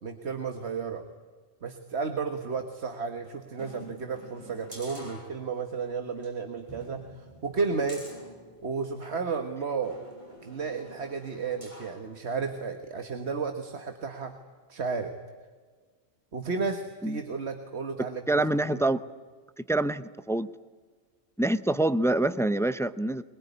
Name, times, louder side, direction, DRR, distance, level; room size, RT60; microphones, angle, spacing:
voice 1, 0.0-1.0 1.6-8.1 8.6-10.0 10.4-14.4 14.7-15.1 16.3-18.8, right 5 dB, 80° right, 6 dB, 1.8 m, -33 dB
sound 1, 3.5-5.8 6.2-6.3 6.7-9.2 9.8-12.0 12.5-12.6, equal, 30° right, 6.8 m, -48 dB
voice 2, 18.3-19.0 19.6-20.5 21.4-23.2, right 2 dB, 5° left, 14 dB, 0.6 m, -26 dB
23.0 x 22.0 x 9.6 m, 1.5 s
omnidirectional pair, 1.1 m